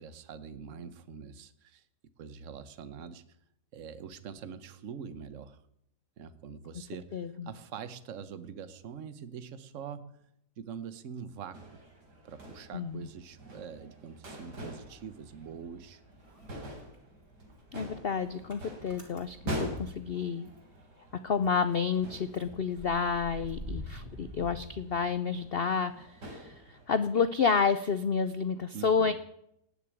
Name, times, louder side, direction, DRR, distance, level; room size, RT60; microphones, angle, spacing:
voice 1, 0.0-1.8 2.2-3.2 3.7-5.6 6.2-10.2 10.6-11.8 12.2-16.0 28.7-29.1, right 7 dB, 55° right, 13 dB, 1.3 m, -44 dB
voice 2, 7.1-7.5 12.7-13.1 17.7-20.4 21.2-29.1, left 6 dB, 60° left, 12 dB, 0.6 m, -30 dB
sound 1, 11.5-27.1, equal, 90° right, 4.2 m, -45 dB
Motor vehicle (road) / Engine starting, 15.0-15.8 16.1-20.8 21.1-21.2 21.4-25.5, equal, 15° right, 3.2 m, -47 dB
18.5 x 6.8 x 9.3 m, 0.76 s
omnidirectional pair, 1.7 m